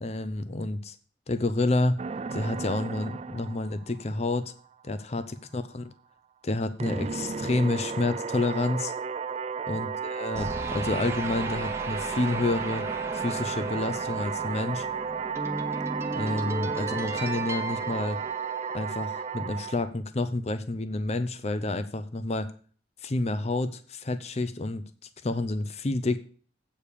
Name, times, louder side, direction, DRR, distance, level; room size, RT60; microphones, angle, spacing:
voice 1, 0.0-1.0 1.3-2.0 2.3-4.5 4.8-5.8 6.4-8.9 9.7-12.8 13.1-14.9 16.1-18.2 18.7-22.5 23.0-24.8 25.2-26.2, left 2 dB, 35° left, 11 dB, 0.6 m, -29 dB
sound 1, 2.0-4.4 6.8-19.9, right 6 dB, 35° right, 0.3 m, -33 dB
sound 2, 10.4-18.9, right 1 dB, 15° right, 0.9 m, -36 dB
8.4 x 5.3 x 6.6 m, 0.41 s
head